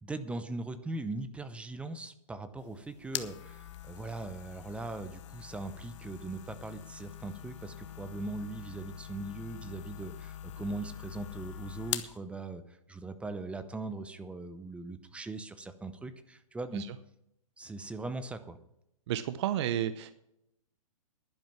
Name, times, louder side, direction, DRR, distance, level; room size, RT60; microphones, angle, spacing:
voice 1, 0.0-16.8 17.6-18.6, right 2 dB, 5° right, 11 dB, 0.7 m, -40 dB
sound 1, 2.6-12.2, left 11 dB, 55° left, 1.0 m, -43 dB
voice 2, 19.1-20.1, right 11 dB, 50° right, 13 dB, 0.8 m, -31 dB
11.0 x 10.5 x 5.9 m, 0.81 s
hypercardioid pair, 135°, 18 cm